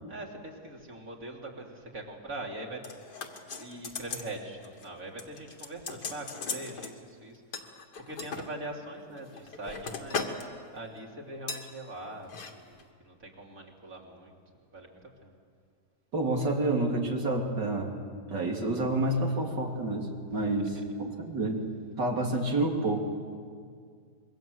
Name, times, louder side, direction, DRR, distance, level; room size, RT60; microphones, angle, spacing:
voice 1, 0.1-2.8 3.5-14.4 14.7-15.3 20.3-20.9 22.3-22.5, right 2 dB, 50° right, -1 dB, 3.5 m, -43 dB
sound 1, 2.8-4.3 4.6-4.9 5.2-6.9 7.5-8.5 9.1-10.5 10.7-11.0 11.5-11.7 12.2-12.5 12.8-12.9, left 5 dB, 75° left, 2.4 m, -38 dB
voice 2, 16.1-17.9 18.3-21.6 22.0-23.0, right 2 dB, 85° right, 1 dB, 3.5 m, -29 dB
26.0 x 22.5 x 7.9 m, 2.1 s
omnidirectional pair, 1.8 m